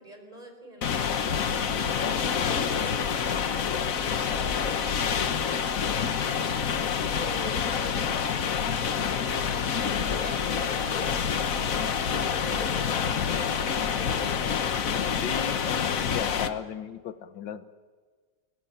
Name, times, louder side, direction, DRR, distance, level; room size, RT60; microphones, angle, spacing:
voice 1, 0.0-1.5 2.1-6.5 7.1-8.5 8.8-9.9 10.2-11.6 12.1-14.9, right 1 dB, 20° right, 4 dB, 4.9 m, -45 dB
sound 1, 0.8-16.5, left 7 dB, 55° left, 1.4 m, -27 dB
voice 2, 15.2-17.7, left 8 dB, 90° left, 12 dB, 1.8 m, -36 dB
21.5 x 20.5 x 8.9 m, 1.5 s
omnidirectional pair, 1.9 m